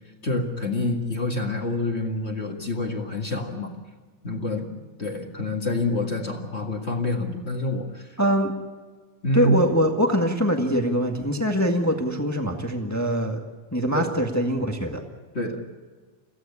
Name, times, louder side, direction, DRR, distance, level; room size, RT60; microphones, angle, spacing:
voice 1, 0.2-3.7 4.2-4.7 5.0-8.1 9.2-9.5 13.9-14.1 15.3-15.6, left 2 dB, 25° left, 2 dB, 1.6 m, -27 dB
voice 2, 8.2-8.5 9.3-13.4 13.7-15.0, equal, 10° left, 3 dB, 0.7 m, -23 dB
23.5 x 16.0 x 8.4 m, 1.4 s
omnidirectional pair, 3.5 m